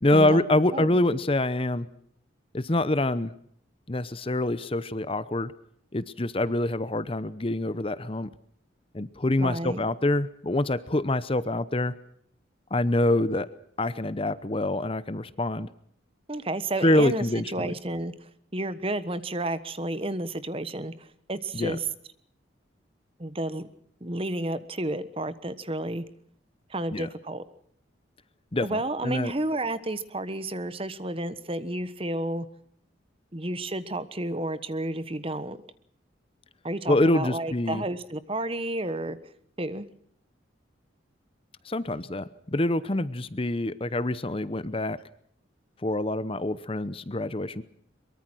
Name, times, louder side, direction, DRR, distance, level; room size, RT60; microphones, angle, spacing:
voice 1, 0.0-1.9 2.5-3.3 3.9-5.5 5.9-8.3 8.9-11.9 12.7-13.5 13.8-15.7 16.8-17.7 21.5-21.8 26.9-27.1 28.5-29.3 36.9-37.8 41.6-45.0 45.8-47.6, left 1 dB, 30° left, 15 dB, 0.8 m, -25 dB
voice 2, 9.4-9.8 16.3-17.2 17.5-18.1 18.5-20.9 21.3-21.8 23.2-23.7 24.0-26.0 26.7-27.4 28.6-32.5 33.3-35.6 36.6-39.2 39.6-39.8, right 1 dB, 30° right, 14 dB, 1.2 m, -31 dB
23.0 x 23.0 x 6.3 m, 0.67 s
head